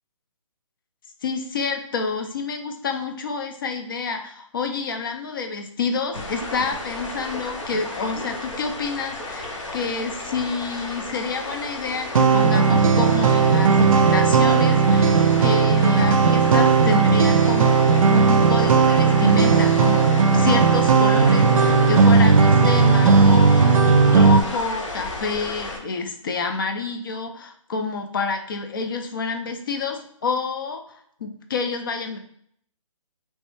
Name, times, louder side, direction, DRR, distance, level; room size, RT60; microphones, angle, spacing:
voice 1, 1.2-9.5 9.7-15.1 15.4-32.2, left 4 dB, 40° left, 5 dB, 0.5 m, -28 dB
sound 1, 6.1-25.8, left 2 dB, 65° left, 0.9 m, -33 dB
sound 2, 12.2-24.4, right 5 dB, 85° right, 0.4 m, -16 dB
3.2 x 3.1 x 3.1 m, 0.66 s
hypercardioid pair, 165°, 17 cm